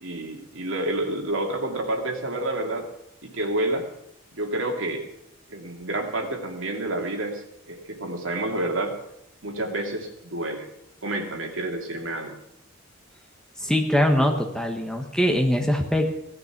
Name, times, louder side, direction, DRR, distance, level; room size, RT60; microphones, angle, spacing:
voice 1, 0.0-2.9 3.2-3.9 4.3-5.1 5.5-9.0 9.4-10.7 11.0-12.4, right 1 dB, 70° right, 2 dB, 2.6 m, -29 dB
voice 2, 13.6-16.2, equal, 5° left, 3 dB, 1.4 m, -22 dB
16.5 x 12.0 x 6.0 m, 0.79 s
head